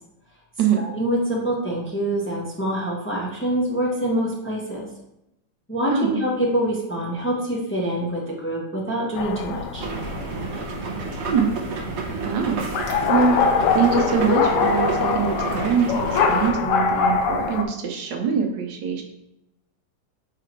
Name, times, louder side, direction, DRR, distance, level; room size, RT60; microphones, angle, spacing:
voice 1, 0.8-4.8 5.7-9.8, right 1 dB, 10° left, -4 dB, 1.1 m, -25 dB
sound 1, 9.2-17.6, left 5 dB, 80° left, 1.2 m, -24 dB
sound 2, 9.8-16.5, right 4 dB, 50° right, 0.9 m, -30 dB
voice 2, 12.2-13.4 13.7-19.0, right 6 dB, 80° right, 2 dB, 1.5 m, -23 dB
4.9 x 4.2 x 4.6 m, 0.88 s
omnidirectional pair, 1.9 m